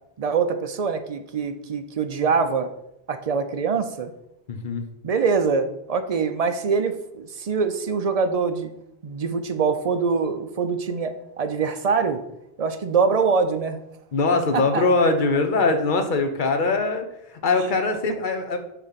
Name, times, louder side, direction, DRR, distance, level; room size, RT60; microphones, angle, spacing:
voice 1, 0.2-2.7 3.1-4.1 5.0-8.7 9.0-12.2 12.6-13.8 14.5-14.8, right 5 dB, 45° right, 8 dB, 0.5 m, -24 dB
voice 2, 4.5-4.9 14.1-17.1 17.4-18.6, left 3 dB, 55° left, 7 dB, 0.9 m, -22 dB
6.7 x 3.3 x 5.7 m, 0.82 s
omnidirectional pair, 1.1 m